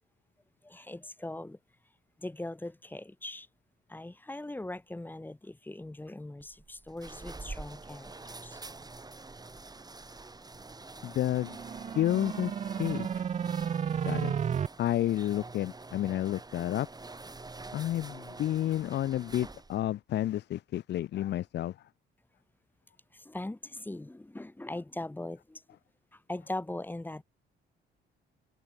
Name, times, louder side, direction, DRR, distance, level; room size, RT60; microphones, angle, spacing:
voice 1, 0.6-1.6 2.2-3.5 3.9-8.6 23.1-25.6 26.1-27.2, left 1 dB, 10° left, 1.0 m, -40 dB
sound 1, 6.4-19.9, right 3 dB, 20° right, 3.2 m, -46 dB
voice 2, 11.0-11.6 11.9-12.5 12.8-13.2 14.0-14.3 14.8-16.9 17.7-21.8, left 13 dB, 60° left, 0.5 m, -30 dB
sound 2, 11.3-14.7, right 7 dB, 35° right, 0.5 m, -32 dB
open air
cardioid pair, 90°, 20 cm